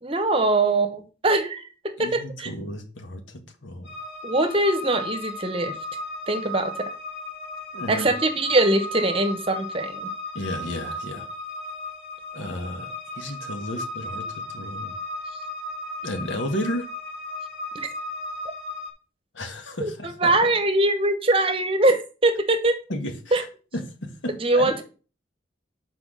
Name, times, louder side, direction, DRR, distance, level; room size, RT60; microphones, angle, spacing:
voice 1, 0.0-2.5 4.2-5.7 6.3-6.9 7.9-10.1 17.7-17.9 19.8-22.8 23.3-23.4 24.4-24.8, right 2 dB, 30° right, 0.9 m, -22 dB
voice 2, 2.0-3.9 7.7-8.1 10.3-11.3 12.3-14.9 16.0-16.9 19.3-20.3 22.9-23.5 23.7-24.7, left 1 dB, 80° left, 1.6 m, -33 dB
sound 1, 3.8-18.9, left 2 dB, 60° left, 3.2 m, -35 dB
6.1 x 4.7 x 6.2 m
head